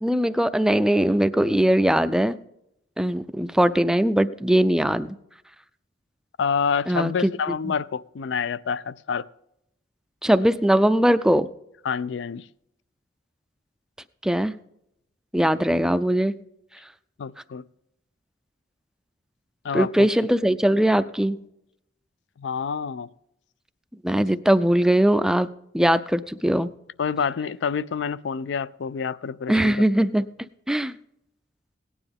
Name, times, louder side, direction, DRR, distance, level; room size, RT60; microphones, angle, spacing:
voice 1, 0.0-2.4 3.0-5.2 6.9-7.3 7.6-7.8 10.2-11.5 14.2-14.5 15.3-16.3 19.7-21.4 24.0-25.5 25.7-26.7 29.5-30.3 30.7-31.0, right 1 dB, 5° right, 0.4 m, -20 dB
voice 2, 6.4-9.3 11.8-12.4 17.2-17.6 19.6-20.1 22.4-23.1 24.1-24.2 27.0-29.8, left 6 dB, 70° left, 0.4 m, -27 dB
17.5 x 9.9 x 3.5 m
head